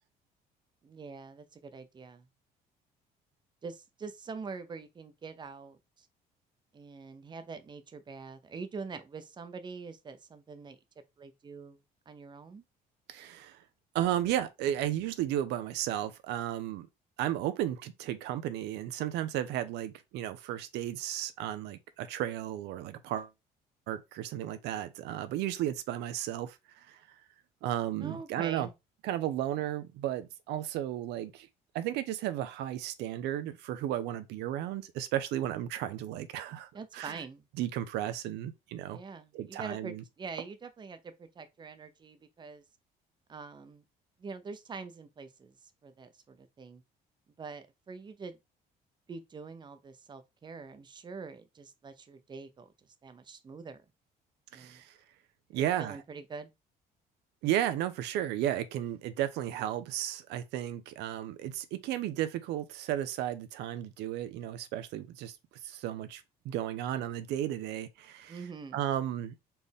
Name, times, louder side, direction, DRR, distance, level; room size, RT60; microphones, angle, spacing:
voice 1, 0.8-2.3 3.6-6.1 6.7-10.8 11.2-11.8 12.1-12.6 28.0-28.7 36.7-37.5 38.9-42.6 43.3-43.8 44.2-45.5 45.8-46.8 47.4-48.4 49.1-52.7 53.0-53.8 54.5-54.8 55.5-56.5 68.3-68.8, right 4 dB, 25° right, 0.7 m, -44 dB
voice 2, 13.1-13.6 13.9-16.9 17.2-23.3 23.9-27.0 27.6-28.7 29.0-31.5 31.7-37.2 37.6-39.0 39.3-40.0 54.5-54.9 55.5-56.0 57.4-65.4 65.6-68.4 68.7-69.4, right 12 dB, 85° right, 0.6 m, -34 dB
4.3 x 3.4 x 3.5 m
cardioid pair, 110°, 17 cm